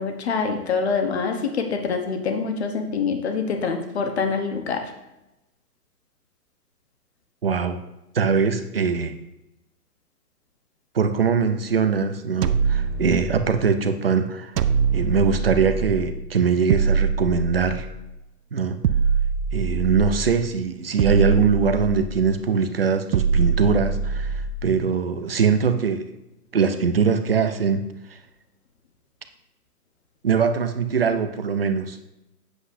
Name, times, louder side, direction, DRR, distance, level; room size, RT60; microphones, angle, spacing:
voice 1, 0.0-4.8, left 5 dB, 45° left, 5 dB, 1.0 m, -25 dB
voice 2, 7.4-7.8 8.1-9.1 10.9-14.5 14.9-17.9 18.5-18.8 19.5-26.1 26.5-27.8 30.2-32.0, right 5 dB, 40° right, 8 dB, 0.5 m, -22 dB
sound 1, 12.4-13.7 14.6-16.2 16.7-18.1 18.8-20.5 21.0-22.4 23.1-24.7, right 6 dB, 85° right, 0.7 m, -24 dB
8.1 x 7.9 x 2.6 m, 0.93 s
hypercardioid pair, 175°, 47 cm